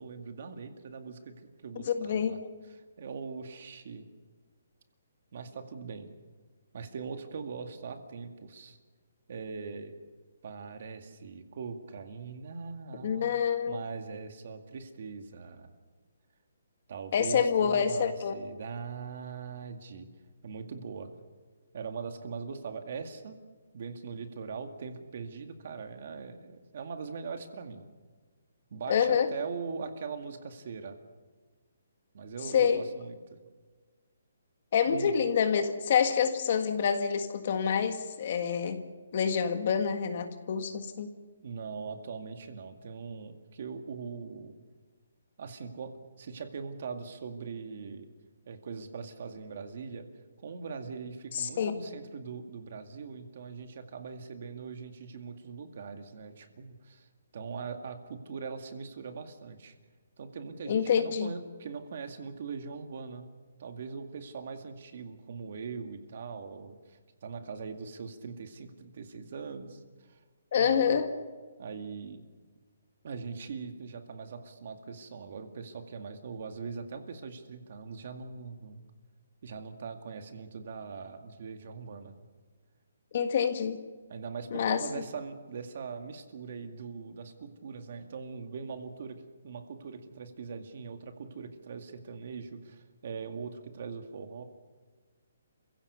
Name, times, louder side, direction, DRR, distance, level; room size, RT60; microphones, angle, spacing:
voice 1, 0.0-2.4 2.6-4.0 5.3-6.1 6.7-8.8 9.3-9.9 10.4-13.3 13.7-15.7 16.9-20.1 20.4-21.1 21.7-23.4 23.7-27.9 28.7-31.0 32.1-33.4 34.9-35.1 41.4-44.6 45.4-48.1 48.5-50.1 50.4-59.7 60.2-63.3 63.6-70.2 70.6-71.0 71.6-72.2 73.0-78.8 79.4-82.2 84.1-94.4, right 5 dB, 40° right, 7 dB, 2.1 m, -41 dB
voice 2, 1.9-2.4 13.0-13.8 17.1-18.4 28.9-29.3 32.5-32.8 34.7-38.8 39.1-41.1 51.3-51.7 60.7-61.3 70.5-71.1 83.1-83.8 84.5-84.8, left 7 dB, 35° left, 8 dB, 1.7 m, -27 dB
29.0 x 16.0 x 6.9 m, 1.4 s
hypercardioid pair, 175°, 0 cm